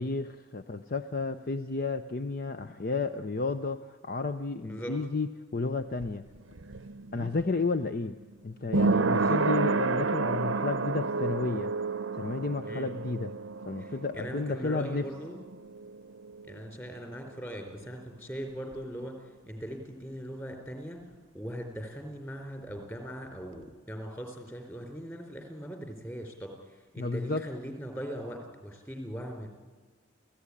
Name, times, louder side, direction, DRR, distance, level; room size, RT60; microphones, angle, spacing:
voice 1, 0.0-6.2 7.1-8.2 8.4-11.7 12.2-13.3 13.7-15.1 27.0-27.4, left 3 dB, 45° left, 9 dB, 0.7 m, -32 dB
sound 1, 5.6-17.2 17.4-17.5, right 3 dB, 65° right, 0.7 m, -31 dB
voice 2, 9.1-9.4 12.7-12.9 13.8-15.5 16.5-19.1 19.5-21.0 21.3-29.5, equal, 15° left, 4 dB, 4.1 m, -40 dB
29.5 x 15.5 x 9.9 m, 1.4 s
head